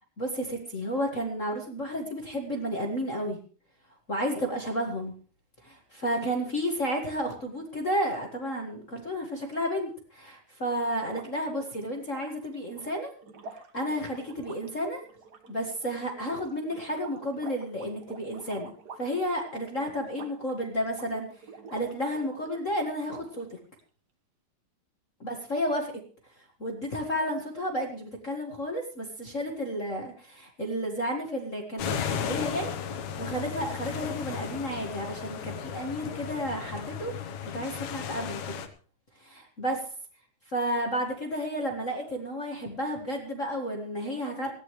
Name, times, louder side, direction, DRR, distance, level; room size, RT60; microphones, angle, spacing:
voice 1, 0.2-3.4 4.1-5.1 5.6-13.1 13.5-15.0 15.5-18.7 19.0-21.3 21.7-23.6 25.2-25.9 26.6-32.8 33.2-38.6 39.2-39.8 40.5-44.5, equal, 35° left, 1 dB, 1.2 m, -32 dB
sound 1, 11.0-22.6 23.0-23.8, right 4 dB, 90° right, 0.9 m, -49 dB
sound 2, 31.8-38.7, left 8 dB, 65° left, 2.3 m, -35 dB
19.0 x 15.0 x 3.2 m, 0.39 s
omnidirectional pair, 4.1 m